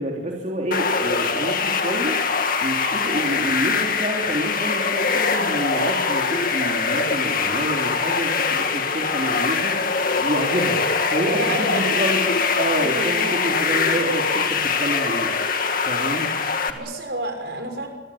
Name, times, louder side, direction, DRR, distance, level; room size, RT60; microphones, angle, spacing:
voice 1, 0.0-2.2 2.6-10.8 11.1-12.3 12.6-15.3 15.9-16.3 16.7-16.8, right 1 dB, 40° right, -1 dB, 3.3 m, -28 dB
sound 1, 0.7-16.7, left 5 dB, 50° left, 2.3 m, -23 dB
voice 2, 11.3-12.1 12.8-13.7 16.7-17.9, right 1 dB, 60° right, 5 dB, 6.3 m, -30 dB
26.5 x 22.5 x 8.6 m, 1.4 s
head